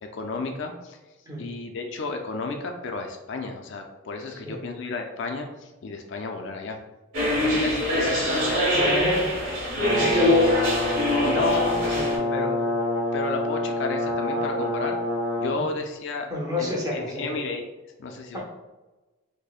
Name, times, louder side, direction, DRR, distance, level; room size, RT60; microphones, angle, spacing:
voice 1, 0.0-1.0 1.4-6.8 7.4-9.1 11.2-11.8 12.3-12.6 13.1-15.0 15.4-16.3 16.6-17.7 18.0-18.4, left 3 dB, 55° left, 4 dB, 0.4 m, -32 dB
sound 1, 7.1-12.2, left 1 dB, 60° right, 1.4 m, -23 dB
voice 2, 8.7-9.3 9.9-10.4 11.9-12.6 15.5-15.7 16.3-17.3 18.3-18.4, left 1 dB, 15° right, -3 dB, 0.7 m, -29 dB
Brass instrument, 9.8-15.6, left 1 dB, 75° right, 1.1 m, -27 dB
6.2 x 2.1 x 2.3 m, 1.1 s
head